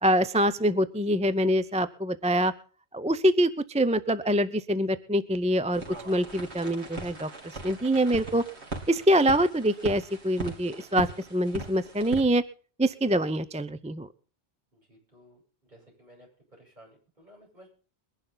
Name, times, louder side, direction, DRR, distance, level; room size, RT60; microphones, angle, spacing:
voice 1, 0.0-2.5 2.9-8.4 8.9-12.4 12.8-14.1, equal, 10° right, 13 dB, 0.4 m, -25 dB
sound 1, 5.7-12.2, right 2 dB, 85° right, 3.6 m, -39 dB
voice 2, 14.9-15.4 15.7-16.3 16.6-17.7, equal, 40° right, -2 dB, 8.3 m, -55 dB
22.5 x 11.0 x 3.9 m, 0.41 s
omnidirectional pair, 1.1 m